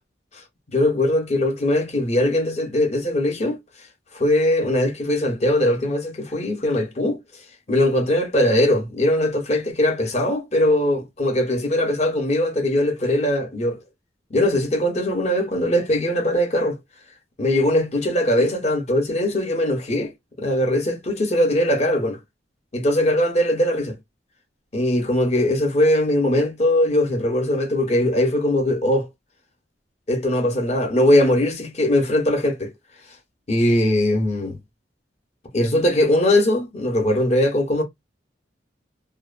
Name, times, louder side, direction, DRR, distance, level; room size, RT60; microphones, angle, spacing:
voice 1, 0.7-3.6 4.1-7.2 7.7-13.8 14.3-16.8 17.4-20.1 20.4-22.2 22.7-23.9 24.7-29.1 30.1-32.7 33.5-34.6 35.5-37.8, left 1 dB, 35° left, 0.7 m, -20 dB
2.6 x 2.1 x 2.4 m
head